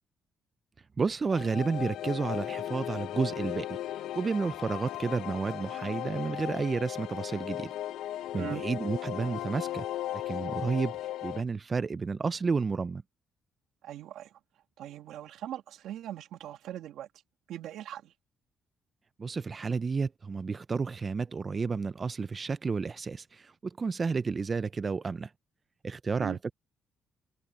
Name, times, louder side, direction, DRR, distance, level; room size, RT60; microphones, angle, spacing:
voice 1, 1.0-7.7 8.3-9.8 10.1-10.9 11.2-13.0 19.2-25.3 25.8-26.4, right 4 dB, 35° right, 0.4 m, -31 dB
sound 1, 1.3-11.4, left 13 dB, 85° left, 0.7 m, -36 dB
voice 2, 13.8-14.4 14.8-17.1 17.5-18.1 26.2-26.4, right 12 dB, 85° right, 2.6 m, -41 dB
cardioid pair, 90°, 0 cm